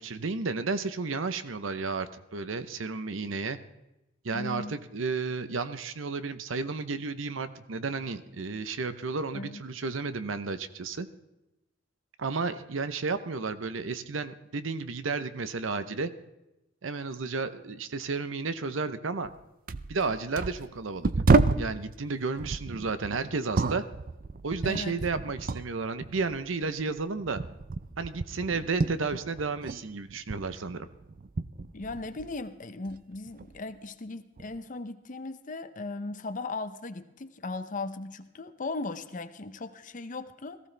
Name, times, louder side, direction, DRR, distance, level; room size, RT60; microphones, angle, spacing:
voice 1, 0.0-3.6 4.2-11.1 12.2-16.1 16.8-19.3 19.9-21.1 21.6-23.8 24.4-27.4 28.0-30.9, right 4 dB, 85° right, 12 dB, 0.8 m, -32 dB
voice 2, 4.3-4.8 9.3-9.6 24.6-25.0 31.7-40.7, left 3 dB, 40° left, 10 dB, 0.7 m, -37 dB
sound 1, 19.2-19.4 19.7-21.8 22.4-25.7 26.0-29.8 30.1-32.4 32.9-33.6 34.4-34.6, right 3 dB, 45° right, 0.5 m, -30 dB
18.0 x 15.0 x 3.4 m, 0.93 s
head